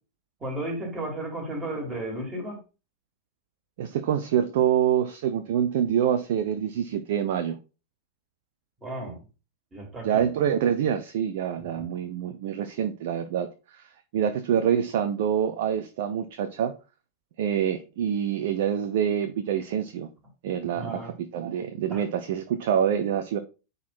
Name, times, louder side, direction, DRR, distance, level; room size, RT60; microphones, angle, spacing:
voice 1, 0.4-2.6 8.8-9.2 9.7-10.3 11.7-11.9 20.7-21.1 21.9-22.0, right 1 dB, 20° right, 4.1 m, -34 dB
voice 2, 3.8-7.6 10.0-16.7 17.4-20.1 20.4-23.4, right 9 dB, 55° right, 0.7 m, -26 dB
9.4 x 4.1 x 4.4 m
figure-of-eight pair, 90°, 0 cm